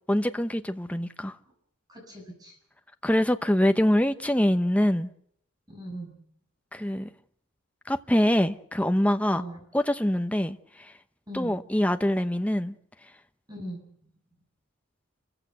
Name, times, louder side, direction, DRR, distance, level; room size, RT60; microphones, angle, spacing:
voice 1, 0.1-1.4 3.0-5.1 6.7-7.1 7.9-9.4 9.7-10.9 11.3-12.7, equal, 5° left, 0.9 m, -24 dB
voice 2, 1.9-2.6 5.7-6.1 9.3-9.6 11.3-11.6 13.5-14.1, right 1 dB, 20° right, 6.8 m, -40 dB
29.5 x 15.0 x 8.0 m
head